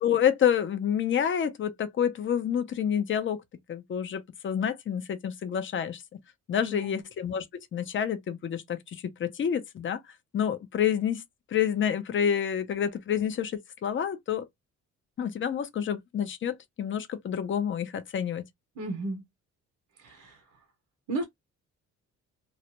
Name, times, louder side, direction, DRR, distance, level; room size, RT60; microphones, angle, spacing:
voice 1, 0.0-3.4 3.7-6.0 6.5-10.0 10.3-11.2 11.5-14.5 15.2-18.4, left 8 dB, 40° left, 0.6 m, -28 dB
voice 2, 6.6-7.0 18.8-19.2 20.0-20.4 21.1-21.2, right 2 dB, 75° right, 0.9 m, -34 dB
2.4 x 2.1 x 2.9 m
cardioid pair, 90°, 30 cm